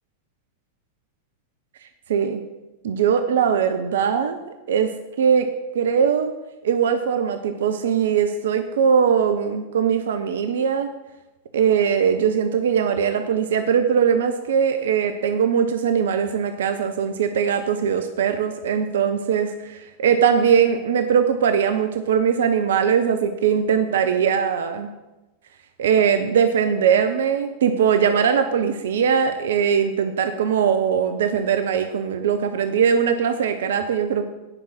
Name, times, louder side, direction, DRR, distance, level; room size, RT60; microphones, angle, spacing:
voice 1, 2.1-2.4 2.8-4.4 4.7-5.5 5.7-6.3 6.6-10.9 11.5-24.9 25.8-34.2, right 7 dB, 60° right, 8 dB, 0.6 m, -20 dB
9.1 x 5.4 x 7.2 m, 1.0 s
figure-of-eight pair, 90°, 0 cm